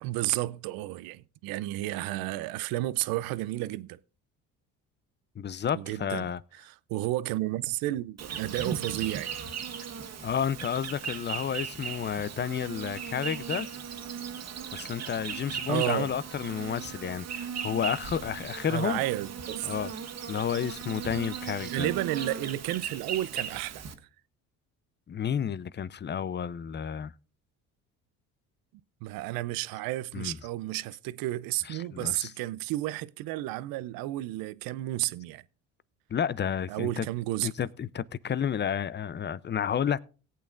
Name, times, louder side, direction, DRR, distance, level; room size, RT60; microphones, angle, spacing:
voice 1, 0.0-4.0 5.7-9.4 15.7-16.1 18.7-19.7 21.6-23.8 29.0-35.4 36.7-37.5, right 16 dB, 75° right, 0.6 m, -32 dB
voice 2, 5.4-6.4 10.2-13.7 14.7-19.0 19.6-19.9 20.3-21.9 25.1-27.1 30.1-30.4 31.7-32.3 36.1-37.1 37.4-40.0, left 8 dB, 30° left, 0.6 m, -31 dB
Insect, 8.2-23.9, right 7 dB, 45° right, 1.6 m, -37 dB
18.0 x 8.4 x 2.5 m
supercardioid pair, 70°, 36 cm